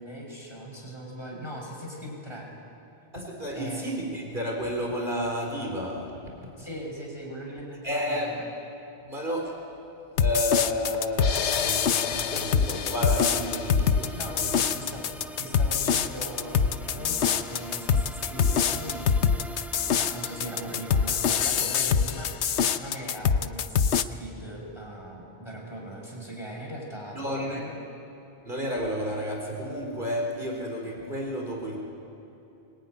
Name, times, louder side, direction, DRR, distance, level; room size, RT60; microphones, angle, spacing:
voice 1, 0.0-2.5 3.5-3.9 6.6-8.5 14.1-15.1 15.4-27.2 27.5-27.7, right 1 dB, 25° left, -2 dB, 6.4 m, -39 dB
voice 2, 3.1-6.1 7.8-8.3 9.0-9.6 10.2-14.6 14.9-15.0 27.1-27.7 28.4-31.8, left 1 dB, 50° right, 0 dB, 4.4 m, -31 dB
sound 1, 10.2-24.0, left 7 dB, 85° left, 1.1 m, -25 dB
sound 2, 11.8-21.6, right 1 dB, ahead, 0.7 m, -43 dB
24.0 x 23.0 x 9.9 m, 2.9 s
omnidirectional pair, 1.1 m